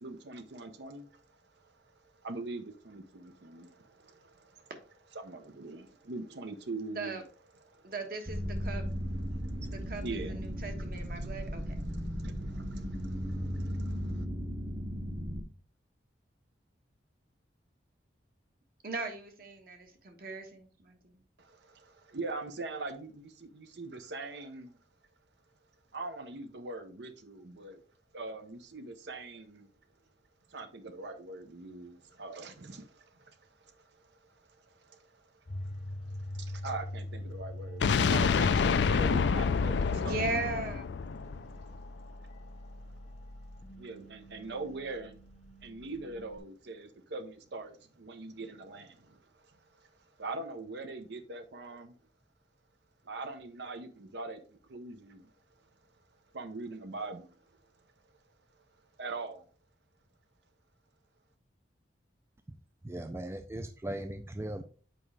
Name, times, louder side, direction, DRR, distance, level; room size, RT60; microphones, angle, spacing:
voice 1, 0.0-1.2 1.6-4.7 5.1-7.2 7.7-7.9 9.3-10.3 11.2-11.6 11.8-14.2 21.4-24.8 25.9-27.8 28.1-29.7 30.5-35.3 35.6-40.2 43.7-45.2 45.6-49.9 50.2-52.0 53.0-55.3 56.3-57.4 59.0-59.5, right 3 dB, 70° right, 0.7 m, -43 dB
voice 2, 6.9-7.2 7.8-8.9 9.7-11.8 18.8-21.2 39.9-40.8, right 3 dB, 55° right, 1.2 m, -38 dB
sound 1, 8.3-15.4, equal, 30° right, 0.8 m, -36 dB
sound 2, 35.5-46.4, left 1 dB, 40° left, 0.7 m, -44 dB
sound 3, 37.8-41.8, left 5 dB, 75° left, 0.4 m, -27 dB
voice 3, 62.8-64.6, right 1 dB, 15° right, 0.4 m, -38 dB
7.7 x 4.9 x 3.3 m
head